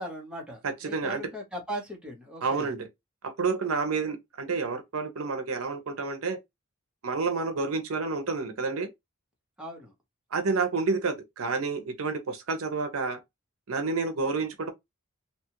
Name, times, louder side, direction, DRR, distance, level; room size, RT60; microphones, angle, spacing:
voice 1, 0.0-2.7 9.6-9.9, right 1 dB, 5° right, 0.9 m, -38 dB
voice 2, 0.6-1.2 2.4-2.9 3.2-6.4 7.0-8.9 10.3-13.2 13.7-14.7, right 4 dB, 75° right, 0.6 m, -29 dB
2.7 x 2.3 x 2.9 m
head